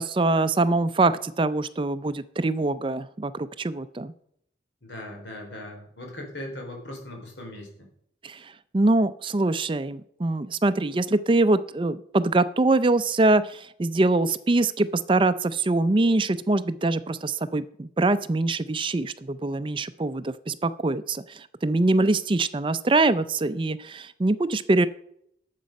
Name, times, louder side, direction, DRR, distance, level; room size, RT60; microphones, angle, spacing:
voice 1, 0.0-4.1 8.2-24.9, right 2 dB, 30° right, 13 dB, 0.4 m, -24 dB
voice 2, 4.8-7.9, left 1 dB, 85° left, 1 dB, 3.7 m, -39 dB
11.5 x 7.5 x 5.2 m, 0.69 s
head